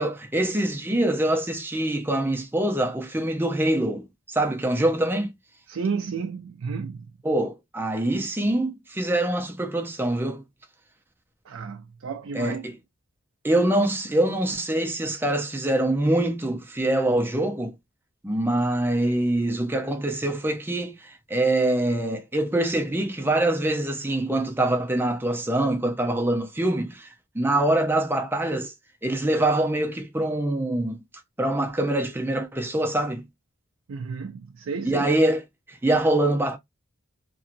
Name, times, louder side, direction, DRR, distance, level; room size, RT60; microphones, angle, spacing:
voice 1, 0.0-5.3 7.2-10.4 12.3-12.8 13.4-17.7 18.2-28.7 29.0-31.0 31.4-33.3 34.8-36.6, right 1 dB, 10° right, 0.5 m, -24 dB
voice 2, 5.7-7.1 11.5-12.6 33.9-35.1, right 5 dB, 85° right, 0.4 m, -32 dB
3.0 x 2.7 x 2.5 m
head